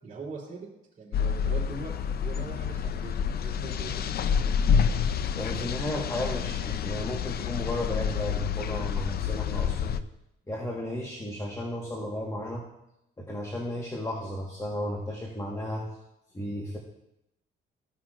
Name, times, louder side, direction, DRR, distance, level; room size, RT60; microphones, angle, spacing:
voice 1, 0.0-0.7 1.0-1.9 2.2-4.6, right 4 dB, 40° right, -9 dB, 3.3 m, -41 dB
sound 1, 1.1-10.0, left 7 dB, 55° left, 0.5 m, -28 dB
voice 2, 5.3-10.0 10.5-12.6 13.2-15.9 16.3-16.8, left 1 dB, 15° left, -2 dB, 1.4 m, -34 dB
15.5 x 5.9 x 2.5 m, 0.88 s
cardioid pair, 90°, 20 cm